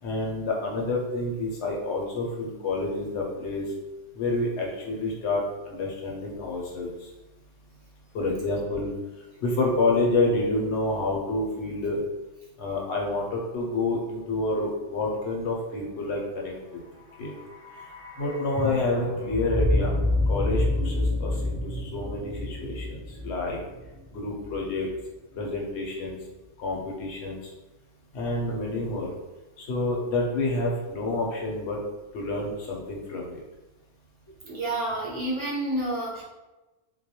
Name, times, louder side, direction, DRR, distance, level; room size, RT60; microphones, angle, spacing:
voice 1, 0.0-3.6 4.1-7.1 8.1-8.9 9.4-12.0 12.6-16.8 17.2-17.3 18.2-19.9 20.3-23.6 24.1-24.9 25.3-26.2 26.6-27.5 28.1-29.1 29.6-31.8 32.1-33.4, left 2 dB, 65° left, -1 dB, 0.8 m, -28 dB
sound 1, 16.9-25.0 25.2-25.3, left 2 dB, 30° left, 0.6 m, -29 dB
voice 2, 34.4-36.2, right 1 dB, 35° right, -6 dB, 0.5 m, -29 dB
2.3 x 2.0 x 2.7 m, 1.1 s
omnidirectional pair, 1.3 m